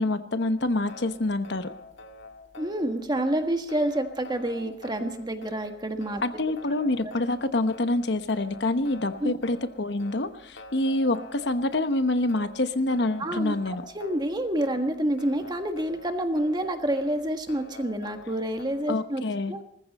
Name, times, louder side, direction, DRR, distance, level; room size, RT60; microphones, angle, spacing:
voice 1, 0.0-1.7 6.2-13.8 18.9-19.5, left 2 dB, 65° left, 10 dB, 1.0 m, -26 dB
sound 1, 0.6-19.0, left 1 dB, 85° left, 1.9 m, -47 dB
voice 2, 2.6-6.2 7.0-7.1 9.2-9.3 13.2-13.6 13.9-19.2 19.5-19.6, right 1 dB, 25° right, 6 dB, 1.6 m, -28 dB
20.0 x 14.5 x 4.2 m, 0.75 s
head